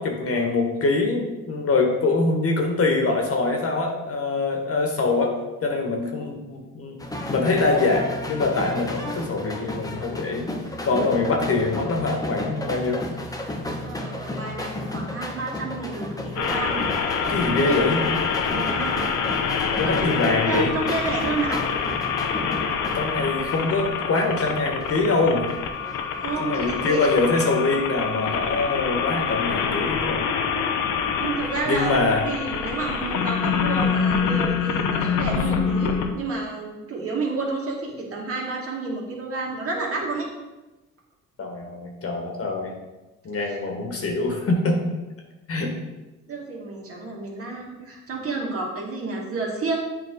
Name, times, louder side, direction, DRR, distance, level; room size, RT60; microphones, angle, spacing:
voice 1, 0.0-5.4 5.6-7.0 7.3-10.5 10.8-13.0 17.3-18.1 19.8-20.7 22.9-25.5 26.4-30.3 31.7-32.2 41.4-42.8 43.2-44.8 45.5-45.7, left 3 dB, 50° left, 2 dB, 1.5 m, -24 dB
sound 1, 7.0-26.9, left 1 dB, 10° left, 1.0 m, -33 dB
voice 2, 13.8-16.8 17.5-17.8 18.5-19.0 19.8-20.1 20.5-21.6 26.2-27.1 31.2-40.3 43.4-43.6 46.3-49.8, right 3 dB, 50° right, -2 dB, 2.1 m, -30 dB
sound 2, 16.4-36.1, left 6 dB, 75° left, 0.8 m, -26 dB
8.1 x 4.7 x 3.9 m, 1.1 s
cardioid pair, 90°, 30 cm